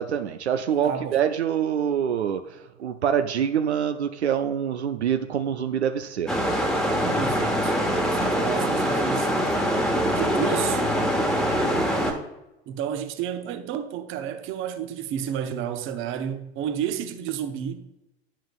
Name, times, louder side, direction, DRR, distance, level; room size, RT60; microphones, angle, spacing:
voice 1, 0.0-6.4, right 8 dB, 80° right, 0.5 m, -25 dB
voice 2, 0.8-1.2 7.2-7.7 8.0-9.4 10.1-10.8 12.7-17.9, right 9 dB, 40° right, 0.7 m, -31 dB
sound 1, 6.3-12.1, equal, ahead, 1.1 m, -23 dB
10.0 x 5.8 x 2.4 m
figure-of-eight pair, 75°, 33 cm